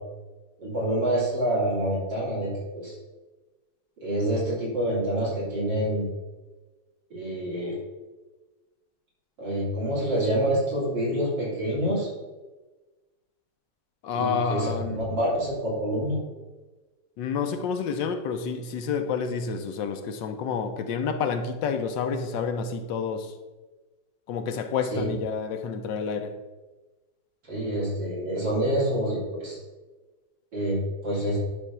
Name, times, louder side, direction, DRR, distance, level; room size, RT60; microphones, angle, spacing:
voice 1, 0.6-2.9 4.0-6.1 7.1-7.7 9.4-12.1 14.1-16.2 24.9-25.1 27.5-29.6 30.5-31.4, right 1 dB, 75° right, -7 dB, 3.9 m, -27 dB
voice 2, 14.0-15.0 17.2-23.3 24.3-26.3, left 6 dB, 80° left, 7 dB, 1.4 m, -29 dB
10.0 x 3.5 x 6.0 m, 1.2 s
omnidirectional pair, 2.0 m